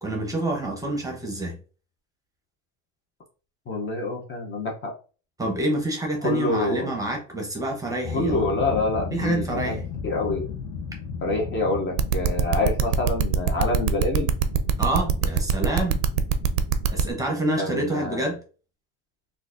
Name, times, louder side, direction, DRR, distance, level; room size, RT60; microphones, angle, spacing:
voice 1, 0.0-1.6 5.4-8.4 9.1-9.8 14.8-16.0 16.9-18.4, right 1 dB, 10° right, 0.8 m, -27 dB
voice 2, 3.7-4.9 6.2-6.9 8.1-9.7 10.0-10.5 11.2-14.3 17.6-18.3, left 2 dB, 30° left, 0.7 m, -26 dB
sound 1, 8.0-17.2, left 6 dB, 55° left, 0.9 m, -35 dB
sound 2, 12.0-17.0, right 10 dB, 50° right, 0.4 m, -22 dB
3.8 x 2.5 x 2.5 m
supercardioid pair, 120°, 38 cm